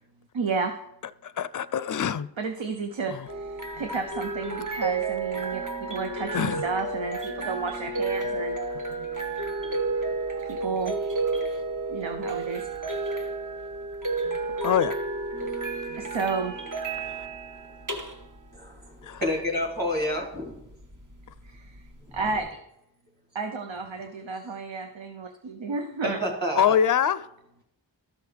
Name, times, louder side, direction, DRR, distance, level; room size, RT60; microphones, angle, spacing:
voice 1, 0.3-0.7 2.4-8.6 9.9-10.0 10.4-11.0 11.9-12.7 16.0-16.6 21.4-22.6 23.3-26.2, right 4 dB, 80° right, 0.8 m, -32 dB
voice 2, 1.2-2.3 3.1-3.2 6.3-6.6 14.6-14.9 17.2-17.3 19.1-19.2 26.6-27.2, left 8 dB, 45° left, 0.4 m, -24 dB
sound 1, 3.3-22.4, right 3 dB, 45° right, 1.2 m, -32 dB
voice 3, 18.5-20.6 22.1-22.2 26.0-26.8, left 1 dB, 20° right, 2.8 m, -29 dB
13.0 x 6.4 x 3.4 m
wide cardioid pair, 50°, 45 cm